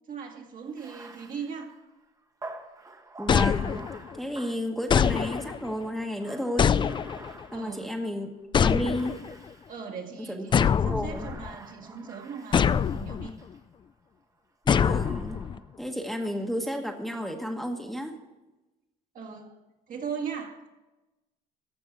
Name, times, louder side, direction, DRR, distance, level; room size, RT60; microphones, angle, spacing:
voice 1, 0.1-1.8 7.5-7.9 9.7-13.3 19.1-19.6 19.9-20.6, right 6 dB, 55° right, 2.0 m, -38 dB
Bathtub (filling or washing), 0.7-8.0 8.6-9.9 10.4-13.6 14.8-15.7, right 3 dB, 20° right, 1.1 m, -48 dB
voice 2, 3.2-3.8 4.1-6.7 7.5-8.3 8.6-9.2 10.3-10.5 10.9-11.3 14.6-15.4 15.8-18.2, equal, ahead, 1.2 m, -32 dB
sound 1, 3.3-4.2 4.9-5.7 6.6-7.4 8.5-9.3 10.5-11.5 12.5-13.3 14.7-15.6, left 7 dB, 30° left, 0.3 m, -24 dB
14.5 x 5.4 x 8.1 m
cardioid pair, 110°, 17 cm